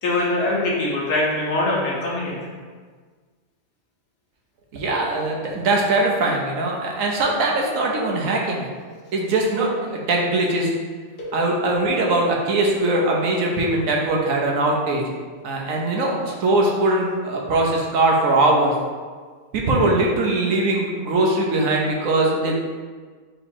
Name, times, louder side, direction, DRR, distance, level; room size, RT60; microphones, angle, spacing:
voice 1, 0.0-2.4 11.2-11.4, left 2 dB, 85° left, -5 dB, 1.5 m, -23 dB
voice 2, 4.7-8.7 9.1-10.7 11.3-15.0 15.4-18.7 19.5-22.6, right 2 dB, 65° right, -1 dB, 1.0 m, -21 dB
4.0 x 2.7 x 4.3 m, 1.5 s
omnidirectional pair, 1.6 m